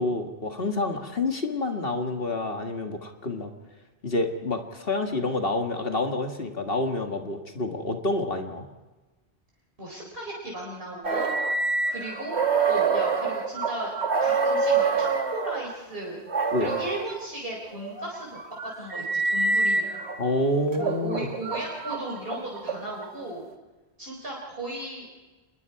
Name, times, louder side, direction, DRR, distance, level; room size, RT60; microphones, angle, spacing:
voice 1, 0.0-3.5 4.0-8.7 16.5-16.7 20.2-21.3, left 2 dB, 60° left, 4 dB, 2.1 m, -28 dB
voice 2, 9.8-11.3 11.9-12.4 12.7-13.9 14.2-16.2 16.6-18.4 18.8-19.9 20.7-23.5 24.0-25.1, right 1 dB, 60° right, -3 dB, 4.5 m, -36 dB
sound 1, 11.0-15.6 16.3-17.1 17.8-20.2 20.7-23.1, right 4 dB, 80° right, 2.1 m, -26 dB
27.5 x 21.5 x 4.8 m, 1.2 s
omnidirectional pair, 1.1 m